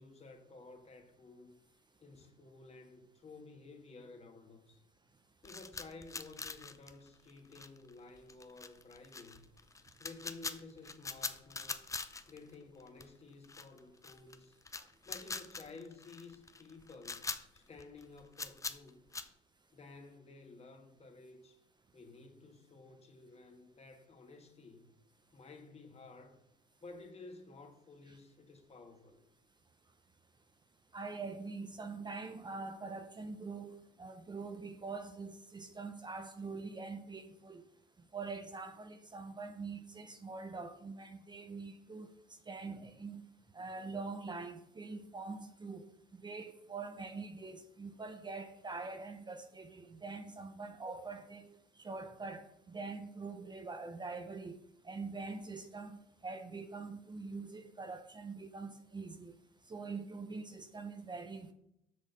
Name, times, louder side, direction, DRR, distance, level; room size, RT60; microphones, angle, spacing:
voice 1, 0.0-1.6 2.0-4.8 5.4-9.5 10.0-11.8 12.3-14.6 15.0-19.0 19.7-21.6 21.9-24.9 25.3-26.4 26.8-29.2, left 3 dB, 35° left, 1.5 m, -53 dB
sound 1, 5.4-12.5 12.8-13.0 13.4-14.4 14.6-19.3, left 4 dB, 15° left, 0.6 m, -43 dB
voice 2, 30.9-37.6 38.1-42.2 42.5-43.2 43.5-45.9 46.2-54.6 54.8-59.3 59.7-61.5, right 4 dB, 20° right, 0.6 m, -44 dB
6.5 x 6.1 x 5.4 m
cardioid pair, 95°, 19 cm